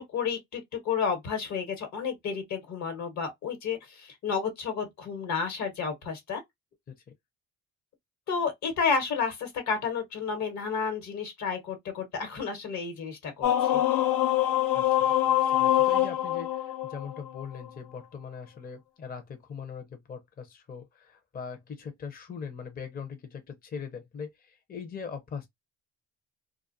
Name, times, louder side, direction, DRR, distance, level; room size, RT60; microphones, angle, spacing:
voice 1, 0.1-6.4 8.3-13.8, left 5 dB, 65° left, 1.2 m, -31 dB
sound 1, 13.4-17.7, left 12 dB, 90° left, 0.5 m, -25 dB
voice 2, 14.7-25.5, left 6 dB, 30° left, 0.6 m, -41 dB
2.3 x 2.2 x 2.5 m
cardioid pair, 90°, 30 cm